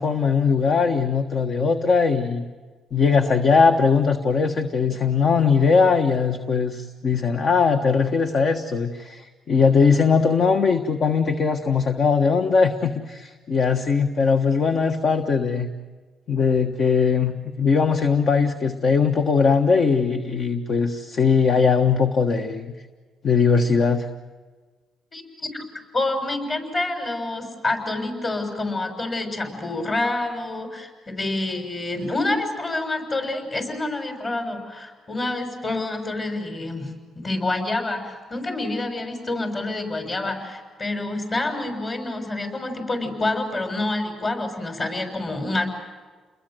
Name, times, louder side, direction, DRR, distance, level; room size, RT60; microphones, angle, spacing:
voice 1, 0.0-2.5 2.9-15.7 16.3-22.7 23.2-24.1, left 5 dB, 55° left, 6 dB, 1.4 m, -20 dB
voice 2, 25.1-25.6 25.9-45.8, left 2 dB, 35° left, 5 dB, 6.8 m, -27 dB
30.0 x 21.5 x 7.9 m, 1.4 s
cardioid pair, 90°, 0 cm